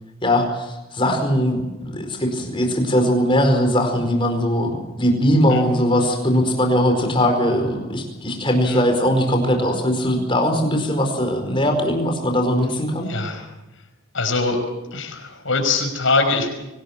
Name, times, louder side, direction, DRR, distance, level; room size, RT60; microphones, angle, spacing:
voice 1, 0.2-13.1, equal, 25° left, 4 dB, 4.7 m, -20 dB
voice 2, 13.1-13.4 14.1-14.6 14.9-16.5, left 3 dB, 65° left, 5 dB, 5.6 m, -22 dB
25.0 x 19.0 x 7.3 m, 1.0 s
head